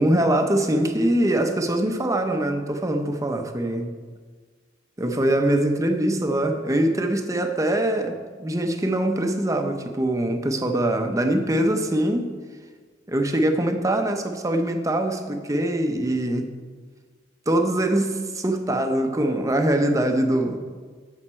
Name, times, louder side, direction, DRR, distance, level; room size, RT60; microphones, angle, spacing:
voice 1, 0.0-3.9 5.0-12.3 13.1-16.5 17.5-20.6, right 1 dB, 15° right, 5 dB, 0.7 m, -23 dB
11.0 x 7.2 x 4.4 m, 1.5 s
head